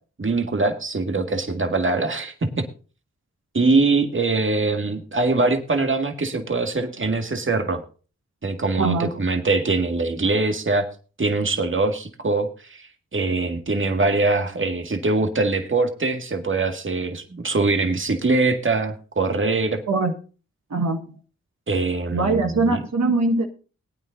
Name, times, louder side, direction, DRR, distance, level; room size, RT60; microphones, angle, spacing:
voice 1, 0.2-2.7 3.5-7.8 8.4-10.9 11.2-19.8 21.7-22.8, right 3 dB, 40° right, 5 dB, 1.9 m, -23 dB
voice 2, 8.8-9.1 19.9-20.1 20.7-21.0 22.1-23.4, right 3 dB, 65° right, 3 dB, 1.6 m, -21 dB
20.5 x 9.1 x 2.6 m, 0.36 s
cardioid pair, 40°, 29 cm